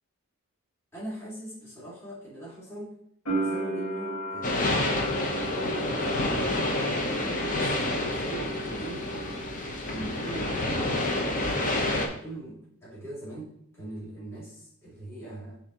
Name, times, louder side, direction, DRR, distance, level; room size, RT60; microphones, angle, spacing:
voice 1, 0.9-3.0 3.3-4.8 5.5-7.7 8.2-9.1 9.6-15.6, right 1 dB, 10° left, -10 dB, 2.2 m, -41 dB
sound 1, 3.3-10.1 10.3-11.2, right 2 dB, 80° left, 2.1 m, -36 dB
sound 2, 4.4-12.1, left 1 dB, 40° left, 0.9 m, -28 dB
10.0 x 3.5 x 3.0 m, 0.69 s
head